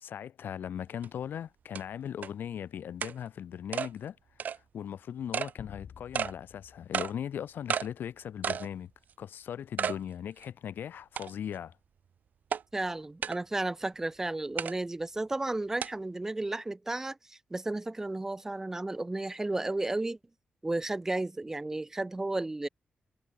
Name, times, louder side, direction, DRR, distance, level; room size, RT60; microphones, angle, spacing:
voice 1, 0.0-4.2 4.5-8.9 9.2-11.8, left 9 dB, 80° left, 1.3 m, -39 dB
sound 1, 1.0-1.1 1.7-1.8 2.2-2.3 3.0-3.1 3.7-3.9 4.4-4.6 5.3-5.5 6.1-6.3 6.9-7.1 7.7-7.9 8.4-8.7 9.1-9.2 9.8-10.0 10.4-10.5 11.2-11.5 12.5-12.6 13.2-13.4 14.6-14.7 15.8-15.9, right 7 dB, 55° right, 0.6 m, -32 dB
sound 2, 5.6-8.2, left 7 dB, 60° left, 4.5 m, -51 dB
voice 2, 12.7-20.2 20.6-22.7, right 2 dB, 15° right, 1.4 m, -33 dB
wide cardioid pair, 175°, 3 cm